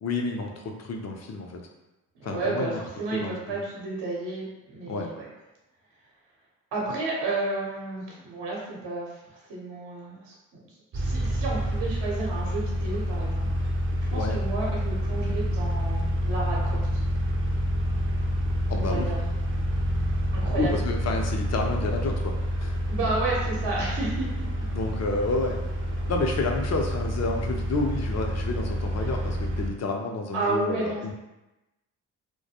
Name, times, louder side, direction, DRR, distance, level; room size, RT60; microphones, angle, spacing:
voice 1, 0.0-1.6 2.2-2.8 3.1-3.5 4.9-5.1 14.1-14.4 18.7-19.1 20.6-22.8 24.7-25.6 26.1-31.1, left 3 dB, 40° left, 2 dB, 0.5 m, -30 dB
voice 2, 2.1-5.3 6.7-10.4 10.9-13.5 14.1-17.0 18.7-19.2 20.3-20.7 22.9-24.3 29.0-29.1 30.3-31.1, right 3 dB, 65° right, -4 dB, 0.8 m, -31 dB
sound 1, 10.9-29.7, equal, 30° right, 0.5 m, -28 dB
2.2 x 2.2 x 2.8 m, 1.0 s
hypercardioid pair, 45°, 43 cm